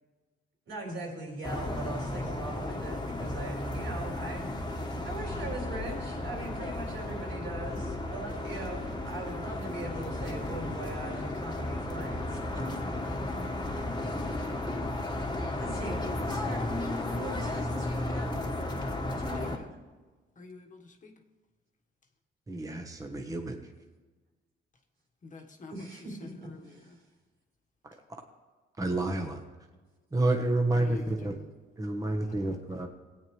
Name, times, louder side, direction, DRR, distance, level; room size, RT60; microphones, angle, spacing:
voice 1, 0.7-13.0 13.7-13.9 15.6-16.7 17.1-18.3 19.2-19.6 25.7-26.9, right 2 dB, 80° right, -1 dB, 4.1 m, -41 dB
sound 1, 1.4-19.6, left 1 dB, 20° left, 1.4 m, -34 dB
voice 2, 19.3-19.7 20.3-21.2 25.2-27.0 30.8-31.5 32.2-32.6, left 3 dB, 40° left, 3 dB, 1.3 m, -48 dB
voice 3, 22.5-23.6 27.8-28.0 28.8-29.4 30.1-31.4 31.8-32.9, right 2 dB, 15° right, 4 dB, 1.1 m, -29 dB
17.0 x 8.7 x 3.2 m, 1.3 s
cardioid pair, 90°, 20 cm